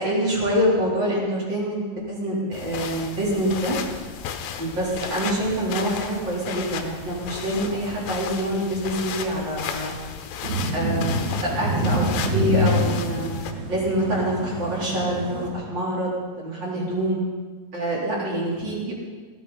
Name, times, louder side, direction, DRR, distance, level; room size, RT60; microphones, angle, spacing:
voice 1, 0.0-1.8 2.1-3.8 4.6-9.9 10.7-13.3 13.7-17.2 17.7-18.9, right 1 dB, 25° right, -5 dB, 4.0 m, -26 dB
sound 1, 2.5-13.5, left 7 dB, 75° left, 3.0 m, -34 dB
sound 2, 10.4-15.5, equal, 55° right, 4.2 m, -26 dB
18.0 x 15.0 x 4.2 m, 1.5 s
omnidirectional pair, 5.5 m